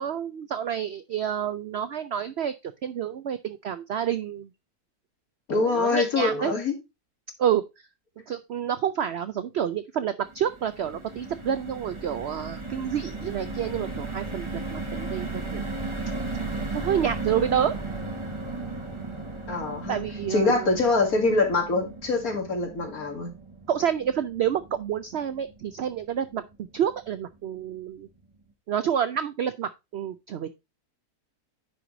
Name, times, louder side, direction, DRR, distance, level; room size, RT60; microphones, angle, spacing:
voice 1, 0.0-4.5 5.5-6.5 7.4-7.6 8.3-14.5 14.7-15.6 16.7-17.8 19.9-20.7 23.7-26.4 26.7-28.1 28.7-30.5, right 9 dB, 75° right, 12 dB, 0.6 m, -28 dB
voice 2, 5.5-6.7 19.5-20.0 20.3-23.3, left 3 dB, 65° left, 3 dB, 2.5 m, -24 dB
sound 1, 10.2-26.6 27.0-27.1 27.3-27.6, right 3 dB, 20° right, 1.1 m, -36 dB
10.0 x 4.7 x 3.8 m, 0.24 s
omnidirectional pair, 1.7 m